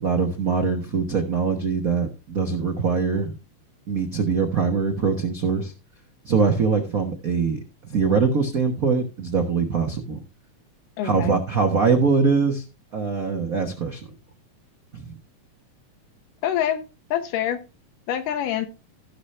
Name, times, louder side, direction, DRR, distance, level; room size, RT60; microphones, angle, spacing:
voice 1, 0.0-3.3 3.9-5.7 6.2-7.6 7.9-10.2 11.0-12.6 12.9-14.1 14.9-15.1, right 5 dB, 75° right, 0.7 m, -23 dB
voice 2, 11.0-11.4 16.4-16.8 17.1-17.6 18.1-18.7, left 10 dB, 85° left, 2.5 m, -25 dB
16.5 x 5.7 x 3.3 m
omnidirectional pair, 3.6 m